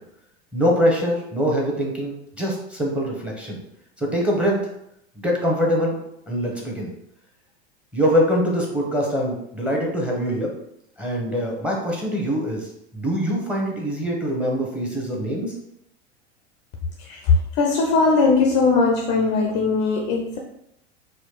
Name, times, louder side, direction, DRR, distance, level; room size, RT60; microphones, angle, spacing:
voice 1, 0.5-3.6 4.0-4.6 5.2-6.0 6.3-6.9 7.9-10.5 11.0-15.6, equal, 5° right, -1 dB, 0.9 m, -23 dB
voice 2, 17.0-20.4, left 4 dB, 30° left, 1 dB, 0.5 m, -19 dB
4.2 x 2.3 x 3.1 m, 0.77 s
figure-of-eight pair, 90°, 35 cm